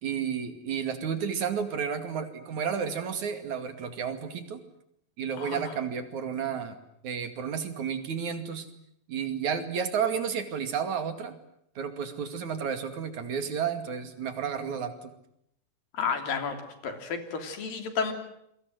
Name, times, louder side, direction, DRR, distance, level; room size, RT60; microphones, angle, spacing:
voice 1, 0.0-4.6 5.2-6.8 7.0-8.7 9.1-11.4 11.8-15.1, right 7 dB, 60° right, 9 dB, 3.6 m, -32 dB
voice 2, 15.9-16.6 16.8-18.1, left 5 dB, 85° left, 7 dB, 5.0 m, -31 dB
28.5 x 23.5 x 7.8 m, 0.74 s
omnidirectional pair, 3.9 m